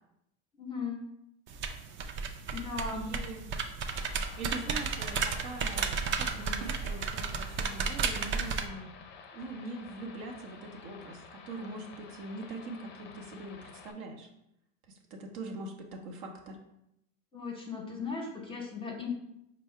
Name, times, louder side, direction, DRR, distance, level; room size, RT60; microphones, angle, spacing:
voice 1, 0.6-1.0 2.5-3.1 17.3-19.1, left 4 dB, 15° left, 0 dB, 0.9 m, -37 dB
sound 1, 1.5-8.7, right 5 dB, 35° right, 0.4 m, -33 dB
voice 2, 2.9-3.5 4.4-8.9 9.3-14.3 15.1-16.6, right 2 dB, 65° right, 2 dB, 0.8 m, -42 dB
sound 2, 3.9-13.9, left 5 dB, 30° left, 0.5 m, -51 dB
4.5 x 2.0 x 4.4 m, 0.81 s
supercardioid pair, 110°, 38 cm